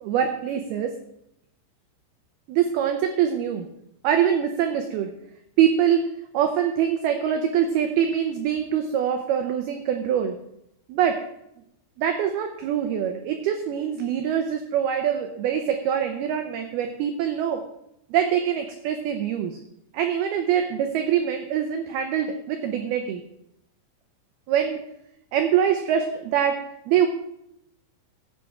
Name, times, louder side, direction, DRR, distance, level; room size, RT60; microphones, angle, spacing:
voice 1, 0.0-0.9 2.5-3.7 4.0-5.1 5.6-6.1 6.3-10.4 10.9-11.2 12.0-17.6 18.1-19.6 19.9-23.2 24.5-24.8 25.3-26.6 26.9-27.1, right 9 dB, 90° right, 6 dB, 2.2 m, -24 dB
15.0 x 8.4 x 3.5 m, 0.81 s
omnidirectional pair, 5.4 m